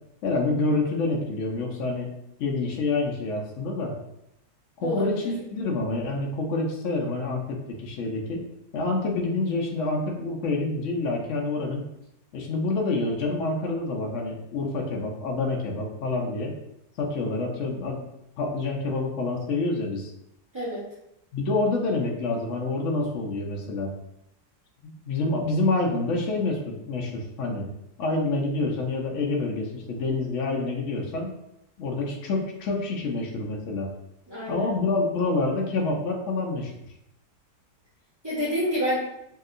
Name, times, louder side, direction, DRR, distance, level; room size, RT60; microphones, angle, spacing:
voice 1, 0.2-2.1 2.4-3.9 4.8-8.4 8.7-11.8 12.3-16.5 17.0-18.0 18.4-20.1 21.3-24.0 24.8-27.7 28.0-31.3 31.8-33.9 34.5-36.7, left 3 dB, 80° left, 0 dB, 0.6 m, -27 dB
voice 2, 4.8-5.3 20.5-20.8 34.3-34.7 38.2-39.0, equal, 25° right, -13 dB, 0.7 m, -28 dB
2.8 x 2.7 x 2.4 m, 0.83 s
omnidirectional pair, 1.9 m